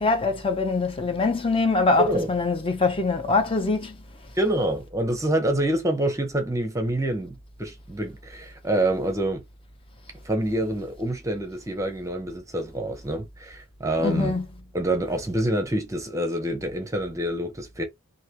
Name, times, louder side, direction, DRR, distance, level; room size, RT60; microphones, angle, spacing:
voice 1, 0.0-3.9 14.0-14.4, left 3 dB, 25° left, 0.6 m, -23 dB
voice 2, 2.0-2.3 4.3-9.4 10.2-14.4 14.7-17.8, right 1 dB, 15° right, 0.8 m, -26 dB
3.2 x 2.7 x 4.4 m
head